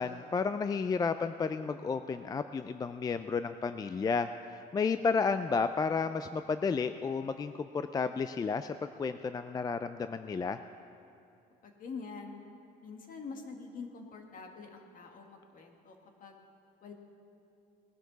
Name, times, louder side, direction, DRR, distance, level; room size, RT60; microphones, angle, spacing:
voice 1, 0.0-10.6, left 5 dB, 25° left, 10 dB, 0.3 m, -32 dB
voice 2, 11.6-12.4 12.8-15.9 16.2-16.4 16.8-16.9, left 4 dB, 55° left, 3 dB, 1.8 m, -45 dB
19.5 x 11.0 x 4.0 m, 2.6 s
cardioid pair, 110°, 17 cm